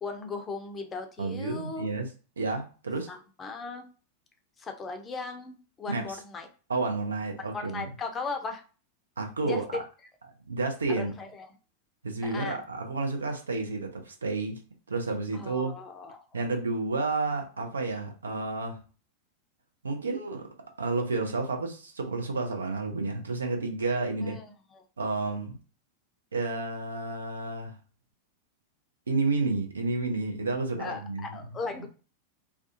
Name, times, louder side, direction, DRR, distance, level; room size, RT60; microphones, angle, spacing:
voice 1, 0.0-1.9 3.1-3.9 4.6-6.5 7.5-8.6 9.4-9.6 11.0-11.5 12.2-12.6 15.3-16.4 24.2-24.5 24.7-24.8 30.8-31.9, left 4 dB, 20° left, 5 dB, 0.5 m, -37 dB
voice 2, 1.2-2.1 2.4-3.1 5.9-6.2 6.7-7.9 9.2-9.8 10.5-11.2 12.0-14.6 14.9-15.8 16.3-18.8 19.8-20.5 20.8-24.4 25.0-25.6 26.3-27.7 29.1-31.4, right 3 dB, 75° right, 3 dB, 0.5 m, -30 dB
2.4 x 2.3 x 2.5 m, 0.36 s
figure-of-eight pair, 90°, 0 cm